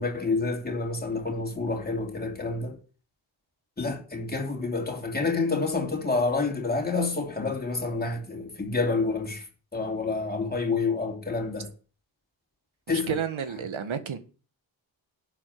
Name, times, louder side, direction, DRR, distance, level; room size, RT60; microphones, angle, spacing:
voice 1, 0.0-2.8 3.8-11.7 12.9-13.2, left 3 dB, 20° left, 3.2 m, -28 dB
voice 2, 12.9-14.2, right 7 dB, 85° right, 1.8 m, -31 dB
12.0 x 7.7 x 8.0 m
wide cardioid pair, 175°, 46 cm